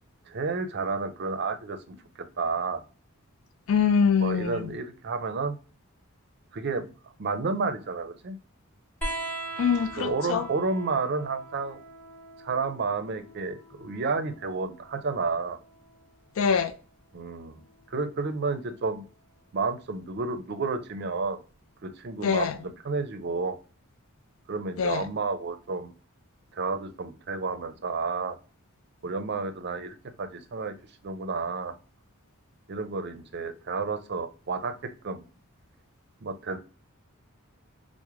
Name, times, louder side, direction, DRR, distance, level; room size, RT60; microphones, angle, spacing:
voice 1, 0.3-2.8 4.2-5.5 6.5-6.8 7.2-8.4 10.0-11.8 12.4-15.6 17.1-17.6 17.9-19.0 19.5-21.4 21.8-23.6 24.5-25.9 26.5-28.4 29.0-30.7 31.0-31.7 32.7-35.2 36.2-36.6, right 4 dB, 50° right, 9 dB, 0.5 m, -31 dB
voice 2, 3.7-4.6 9.6-10.5 16.4-16.7 22.2-22.6 24.8-25.1, left 6 dB, 65° left, 9 dB, 0.3 m, -24 dB
sound 1, 9.0-16.1 17.4-18.3 19.6-19.7, right 2 dB, 10° left, 0.8 m, -41 dB
4.7 x 2.1 x 2.9 m, 0.36 s
head